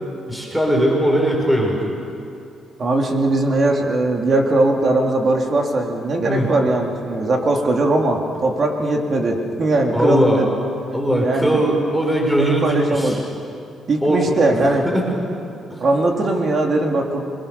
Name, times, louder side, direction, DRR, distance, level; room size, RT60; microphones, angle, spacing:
voice 1, 0.3-2.0 6.3-6.5 9.9-10.4 10.9-13.2 14.0-14.3 14.8-15.1 15.7-15.9, right 1 dB, 5° right, -1 dB, 5.5 m, -19 dB
voice 2, 2.8-10.6 11.2-11.6 12.4-13.2 13.9-14.8 15.8-17.2, right 2 dB, 45° right, 1 dB, 3.6 m, -19 dB
29.5 x 22.0 x 7.1 m, 2.6 s
cardioid pair, 90°, 0 cm